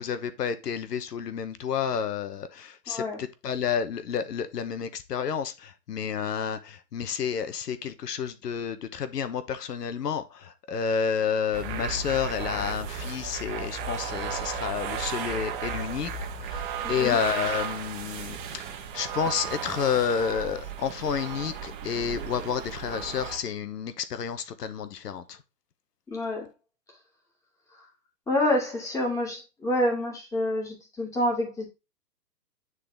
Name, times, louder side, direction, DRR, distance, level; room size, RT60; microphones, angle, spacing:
voice 1, 0.0-16.1 16.4-25.4, left 7 dB, 70° left, 1.1 m, -30 dB
voice 2, 2.9-3.2 16.8-17.1 26.1-26.5 28.3-31.6, left 1 dB, 5° left, 2.1 m, -27 dB
sound 1, 11.5-23.4, right 6 dB, 30° right, 1.4 m, -35 dB
9.6 x 4.0 x 3.5 m
hypercardioid pair, 145°, 50 cm